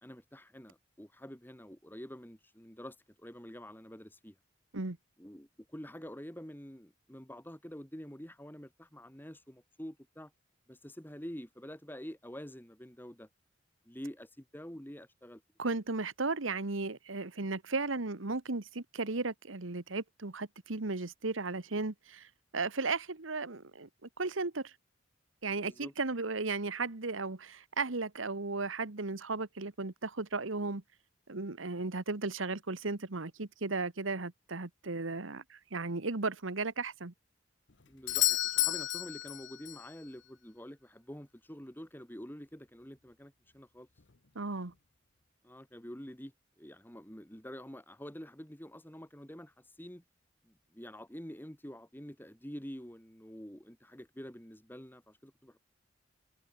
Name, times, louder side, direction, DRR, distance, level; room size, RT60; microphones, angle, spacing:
voice 1, 0.0-4.3 5.2-10.3 10.7-13.3 13.9-15.4 25.6-25.9 37.9-43.9 45.4-50.0 50.4-55.6, equal, 10° left, 2.5 m, -47 dB
voice 2, 15.6-22.3 22.5-24.7 25.4-30.8 31.3-37.1 44.3-44.7, right 3 dB, 85° right, 1.5 m, -35 dB
Doorbell, 38.1-39.9 44.0-44.1, left 16 dB, 65° left, 1.0 m, -31 dB
head